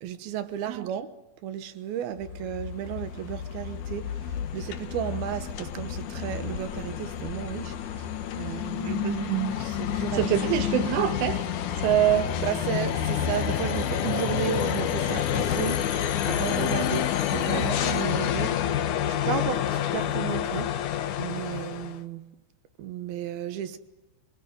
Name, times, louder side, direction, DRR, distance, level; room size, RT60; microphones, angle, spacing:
voice 1, 0.0-1.2 1.4-8.1 8.4-9.1 9.6-10.4 12.4-15.9 16.2-20.8 21.2-22.2 22.8-23.8, right 10 dB, 70° right, 2.6 m, -33 dB
sound 1, 2.2-22.0, left 10 dB, 85° left, 1.7 m, -29 dB
voice 2, 8.8-9.5 10.1-11.4 11.8-12.4, right 12 dB, 85° right, 3.8 m, -25 dB
27.0 x 21.0 x 9.5 m
omnidirectional pair, 5.4 m